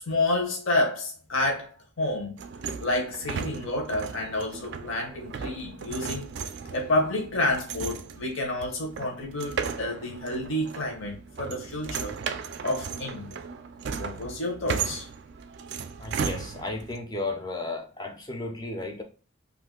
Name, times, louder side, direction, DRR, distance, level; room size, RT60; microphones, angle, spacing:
voice 1, 0.0-2.4 2.8-6.3 6.7-12.2 12.6-13.4 14.0-15.1, left 2 dB, 65° left, 0.8 m, -29 dB
sound 1, 2.4-17.0, right 6 dB, 50° right, 0.3 m, -36 dB
voice 2, 16.0-19.0, left 2 dB, 20° left, 0.4 m, -34 dB
2.5 x 2.5 x 3.7 m
head